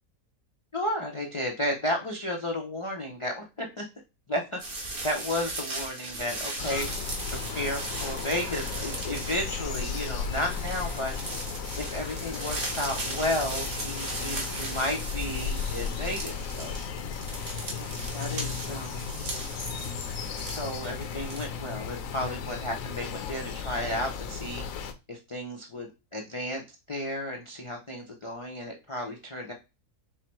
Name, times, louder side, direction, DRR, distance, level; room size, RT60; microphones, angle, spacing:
voice 1, 0.7-3.8 4.3-4.6 5.0-6.9 7.3-11.1 11.8-16.8 17.8-17.9 18.1-18.9 20.5-24.6 25.1-29.5, left 1 dB, 55° left, 0 dB, 0.3 m, -33 dB
sound 1, 4.6-21.5, right 2 dB, 50° right, 1.5 m, -38 dB
sound 2, 6.6-24.9, left 6 dB, 70° left, 0.9 m, -35 dB
sound 3, 6.8-11.4, right 1 dB, 80° right, 2.5 m, -49 dB
4.8 x 2.1 x 4.3 m, 0.27 s
omnidirectional pair, 1.6 m